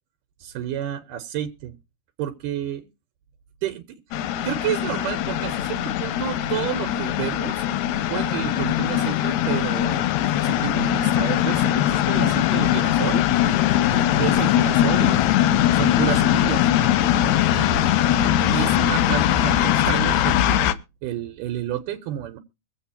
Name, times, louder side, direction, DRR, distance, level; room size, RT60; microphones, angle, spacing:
voice 1, 0.4-1.8 2.2-2.9 3.6-7.7 8.1-10.1 10.4-13.2 13.9-15.2 15.7-16.7 17.5-18.1 18.5-22.4, right 11 dB, 80° right, 2.4 m, -30 dB
sound 1, 4.1-20.7, left 11 dB, 75° left, 1.8 m, -21 dB
23.5 x 8.1 x 2.8 m
omnidirectional pair, 3.9 m